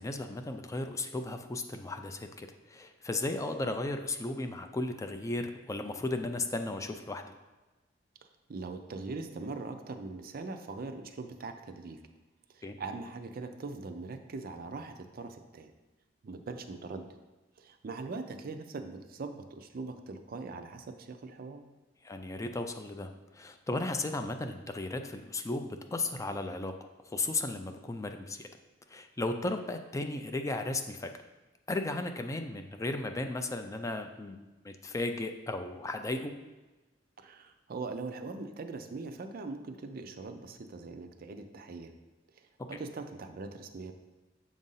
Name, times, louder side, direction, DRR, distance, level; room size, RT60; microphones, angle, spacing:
voice 1, 0.0-7.3 12.6-12.8 22.0-26.7 27.1-28.5 28.9-31.1 31.7-36.3 42.7-42.8, left 2 dB, 15° left, 6 dB, 0.3 m, -35 dB
voice 2, 8.5-12.0 12.5-15.7 16.2-17.1 17.6-21.6 37.2-41.9 42.3-43.9, right 3 dB, 50° right, 7 dB, 0.5 m, -41 dB
7.2 x 2.6 x 5.5 m, 1.2 s
head